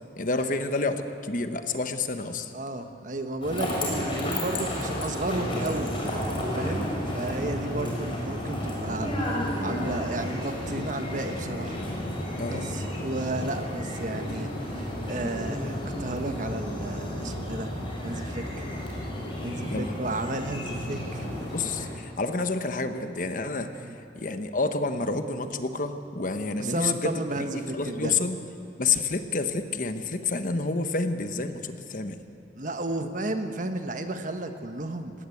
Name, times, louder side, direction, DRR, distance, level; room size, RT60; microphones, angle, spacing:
voice 1, 0.2-2.5 6.5-6.8 12.4-12.7 19.7-19.9 21.5-28.4 28.8-32.2, left 3 dB, 45° left, 8 dB, 1.1 m, -29 dB
voice 2, 2.5-5.9 6.5-6.9 7.1-9.4 9.6-11.7 12.5-17.7 18.0-18.6 19.4-21.3 23.8-23.9 26.6-28.2 32.6-35.1, right 2 dB, 45° right, 7 dB, 1.2 m, -33 dB
sound 1, 3.4-21.9, left 1 dB, 30° left, 4.7 m, -32 dB
20.0 x 17.5 x 8.4 m, 2.8 s
head